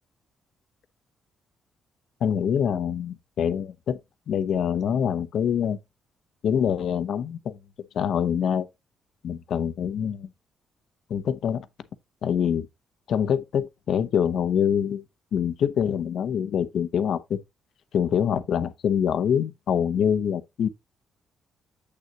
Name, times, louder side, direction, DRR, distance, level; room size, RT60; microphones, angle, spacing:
voice 1, 2.2-4.0 4.3-5.8 6.4-7.6 7.9-8.7 9.2-10.3 11.1-11.7 12.2-12.7 13.1-15.0 15.3-17.4 17.9-20.7, left 8 dB, 65° left, 0.8 m, -25 dB
8.0 x 6.6 x 2.8 m
cardioid pair, 90°, 0 cm